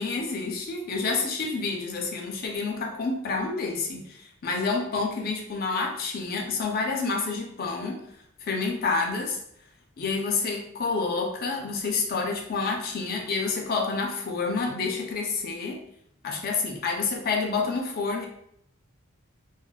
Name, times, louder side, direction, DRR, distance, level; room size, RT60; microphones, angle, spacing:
voice 1, 0.0-8.0 8.4-9.4 10.0-15.8 16.2-18.3, left 4 dB, 45° left, 1 dB, 0.5 m, -28 dB
3.1 x 2.1 x 2.2 m, 0.72 s
head